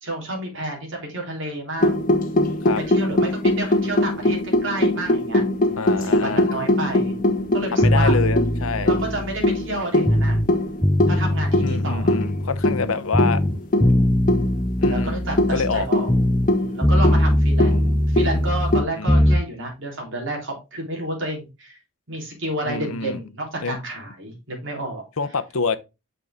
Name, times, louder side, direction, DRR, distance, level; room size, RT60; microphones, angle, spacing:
voice 1, 0.0-2.1 2.9-5.4 5.9-7.1 7.5-8.2 8.8-10.4 11.1-12.2 14.9-16.1 16.6-21.8 22.1-25.0, right 1 dB, 55° right, 3.5 m, -30 dB
sound 1, 1.8-18.8, left 1 dB, 40° left, 1.4 m, -22 dB
voice 2, 5.8-6.5 7.7-8.9 11.6-13.4 14.8-15.2 15.5-15.9 19.0-19.4 22.6-23.2 23.6-23.8 25.2-25.8, left 4 dB, 70° left, 0.8 m, -26 dB
sound 2, 7.8-10.5 10.8-12.9 13.1-16.6 16.8-19.4, left 1 dB, 5° left, 0.3 m, -21 dB
6.7 x 6.5 x 3.6 m
head